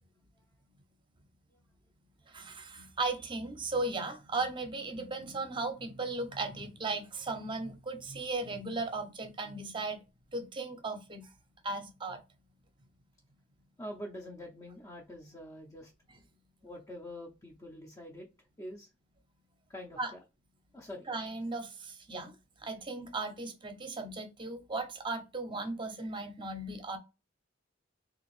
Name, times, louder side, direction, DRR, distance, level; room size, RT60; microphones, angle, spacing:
voice 1, 2.3-10.0 10.3-11.3 11.6-12.2 20.0-20.1 21.1-22.3 22.6-27.0, right 3 dB, 25° right, 0.7 m, -36 dB
voice 2, 13.8-15.9 16.6-18.3 18.6-18.9 19.7-20.2 20.7-21.1, left 1 dB, 20° left, 0.6 m, -45 dB
3.5 x 2.5 x 3.1 m
head